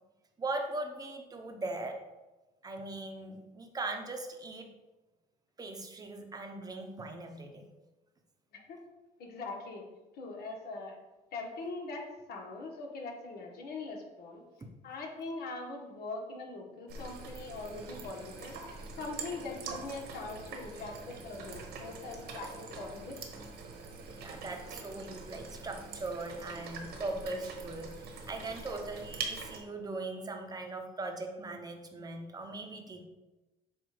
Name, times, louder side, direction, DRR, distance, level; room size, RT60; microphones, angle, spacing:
voice 1, 0.4-2.0 2.6-4.7 5.6-7.7 24.2-33.0, right 2 dB, 20° right, 4 dB, 0.9 m, -40 dB
voice 2, 9.2-9.8 10.2-11.0 11.3-14.4 14.8-18.5 19.0-23.2 28.7-28.8, left 3 dB, 65° left, 0 dB, 1.5 m, -42 dB
sound 1, 16.9-29.6, right 4 dB, 75° right, 1.2 m, -44 dB
7.6 x 2.6 x 5.0 m, 1.1 s
cardioid pair, 110°, 17 cm